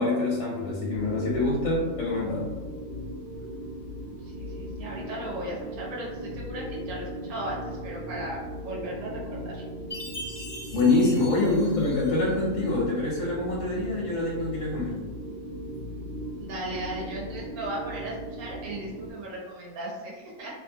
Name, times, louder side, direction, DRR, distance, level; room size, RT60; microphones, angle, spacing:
voice 1, 0.0-2.5 10.7-15.0, left 2 dB, 65° left, -4 dB, 0.8 m, -25 dB
sound 1, 0.9-19.1, equal, 90° right, 1.2 m, -38 dB
voice 2, 4.2-9.6 16.4-20.5, right 1 dB, 70° right, -4 dB, 1.2 m, -36 dB
Chime, 9.9-12.4, left 1 dB, 35° left, 0.4 m, -41 dB
2.9 x 2.3 x 2.7 m, 1.3 s
omnidirectional pair, 1.7 m